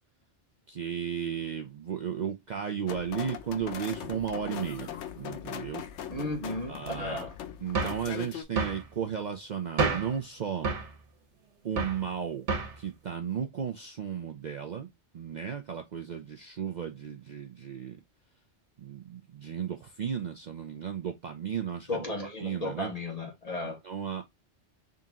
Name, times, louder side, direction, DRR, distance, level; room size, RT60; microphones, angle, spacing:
voice 1, 0.7-5.8 6.7-7.2 7.6-10.7 11.6-12.5 12.8-14.9 15.1-18.0 18.8-22.9 23.6-24.2, right 8 dB, 50° right, 0.6 m, -34 dB
sound 1, 2.9-8.4, left 9 dB, 90° left, 1.0 m, -40 dB
voice 2, 6.1-7.3 21.9-23.8, left 2 dB, 35° left, 1.3 m, -34 dB
sound 2, 7.7-8.1 8.6-8.8 9.8-10.2 10.6-10.9 11.8-12.0 12.5-12.8, right 4 dB, 85° right, 1.4 m, -29 dB
3.8 x 2.8 x 3.6 m
omnidirectional pair, 1.2 m